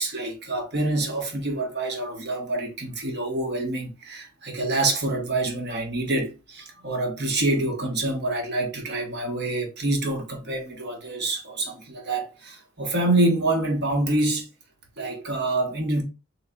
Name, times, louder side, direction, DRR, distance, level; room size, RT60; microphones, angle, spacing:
voice 1, 0.0-14.5 15.0-16.0, right 2 dB, 55° right, 1.3 m, -26 dB
3.8 x 3.3 x 3.8 m
head